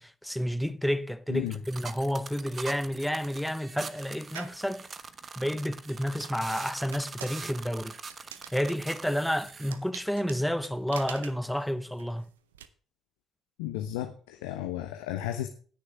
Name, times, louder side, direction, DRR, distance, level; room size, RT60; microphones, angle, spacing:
voice 1, 0.0-4.9 5.4-8.0 8.5-12.3, equal, ahead, 0.9 m, -30 dB
sound 1, 1.5-9.7, right 5 dB, 40° right, 1.1 m, -43 dB
sound 2, 4.3-4.7 5.2-12.7, right 10 dB, 90° right, 0.6 m, -47 dB
voice 2, 13.6-15.5, left 12 dB, 80° left, 0.8 m, -34 dB
18.5 x 6.6 x 3.5 m
hypercardioid pair, 50°, 0 cm